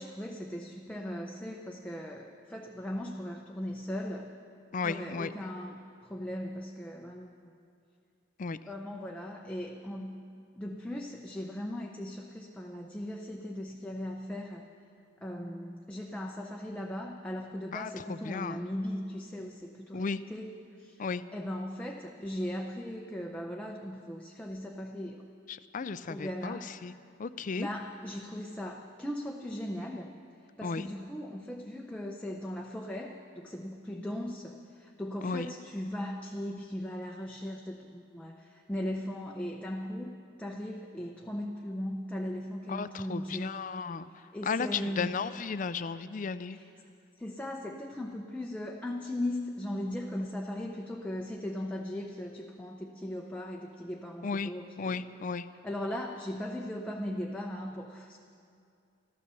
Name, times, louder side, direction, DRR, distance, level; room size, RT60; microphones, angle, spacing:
voice 1, 0.0-4.3 4.8-7.5 8.7-10.2 10.5-14.7 15.2-21.0 21.3-25.2 26.1-26.7 27.6-30.1 30.6-40.1 40.4-43.5 44.3-45.2 46.5-46.7 47.2-55.0 55.6-58.2, left 1 dB, 5° left, 0 dB, 0.7 m, -38 dB
voice 2, 4.7-5.3 8.4-8.6 17.7-18.6 19.9-20.2 21.0-21.2 25.5-26.9 27.2-27.7 30.6-30.9 35.2-35.5 42.7-44.1 44.4-46.6 54.2-54.5 54.8-55.5, left 5 dB, 40° left, 14 dB, 0.4 m, -34 dB
14.0 x 13.0 x 6.9 m, 2.4 s
head